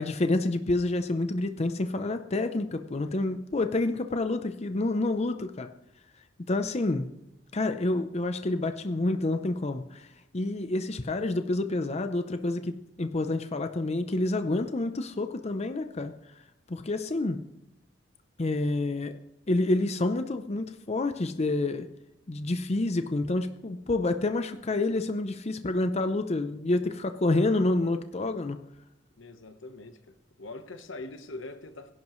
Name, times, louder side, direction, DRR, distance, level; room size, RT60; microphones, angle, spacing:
voice 1, 0.0-5.7 6.4-7.1 7.5-16.1 16.7-17.4 18.4-19.1 19.5-21.9 22.3-28.6, left 2 dB, 35° left, 0.6 m, -28 dB
voice 2, 29.2-31.9, left 2 dB, 85° left, 1.2 m, -43 dB
21.5 x 11.0 x 3.2 m
head